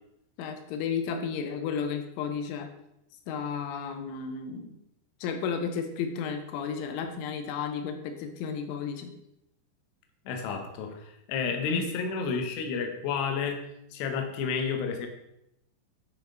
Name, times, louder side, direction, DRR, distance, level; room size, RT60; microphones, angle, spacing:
voice 1, 0.4-2.7 3.3-4.7 5.2-9.1 11.7-11.9, left 6 dB, 90° left, 6 dB, 3.3 m, -33 dB
voice 2, 10.3-13.6 13.9-15.1, left 5 dB, 75° left, 4 dB, 3.0 m, -31 dB
10.5 x 6.0 x 3.8 m, 0.83 s
omnidirectional pair, 5.4 m